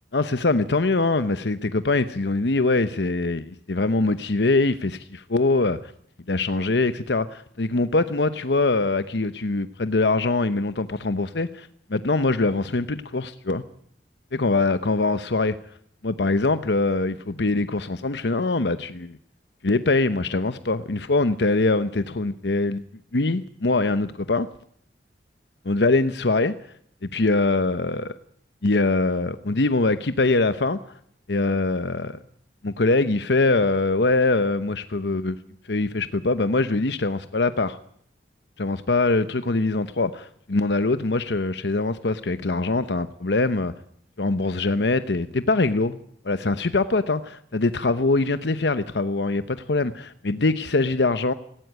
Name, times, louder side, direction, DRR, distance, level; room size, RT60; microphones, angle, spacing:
voice 1, 0.1-5.9 6.3-13.6 14.3-15.5 16.0-19.2 19.6-22.8 23.1-24.5 25.7-26.5 27.0-28.1 28.6-30.8 31.3-32.2 32.6-35.4 35.7-37.8 38.6-43.7 44.2-46.0 46.2-51.3, left 3 dB, 75° left, 0.9 m, -23 dB
18.0 x 17.5 x 9.2 m
head